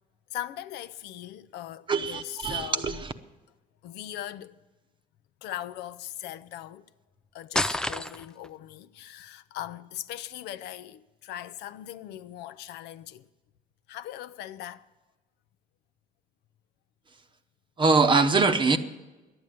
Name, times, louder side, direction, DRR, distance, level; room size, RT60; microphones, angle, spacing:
voice 1, 0.3-3.0 3.8-4.6 5.4-6.8 7.3-13.3 13.9-14.9, left 12 dB, 80° left, 0.6 m, -40 dB
voice 2, 1.9-3.1 17.8-18.8, right 4 dB, 30° right, 0.8 m, -23 dB
sound 1, 7.5-8.5, left 1 dB, 5° left, 0.4 m, -28 dB
11.0 x 8.8 x 9.3 m
cardioid pair, 110°, 17 cm